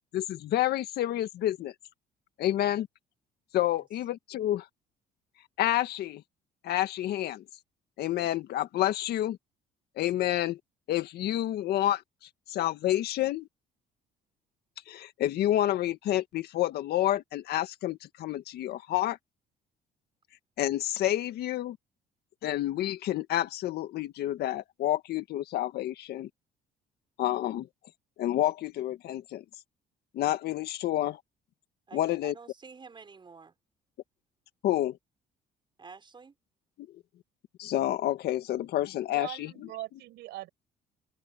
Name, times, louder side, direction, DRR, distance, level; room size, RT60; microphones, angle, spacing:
voice 1, 0.1-1.7 2.4-2.9 3.5-4.7 5.6-6.2 6.6-7.4 8.0-9.4 10.0-10.6 10.9-12.0 12.5-13.5 14.9-19.2 20.6-21.8 22.4-26.3 27.2-27.7 28.2-29.4 30.1-31.2 31.9-32.3 34.6-35.0 36.8-36.9 37.6-39.5, left 13 dB, 70° left, 1.9 m, -29 dB
voice 2, 31.9-33.5 35.8-36.3, right 5 dB, 30° right, 5.6 m, -49 dB
voice 3, 39.1-40.5, right 16 dB, 85° right, 5.4 m, -41 dB
open air
cardioid pair, 110°, 17 cm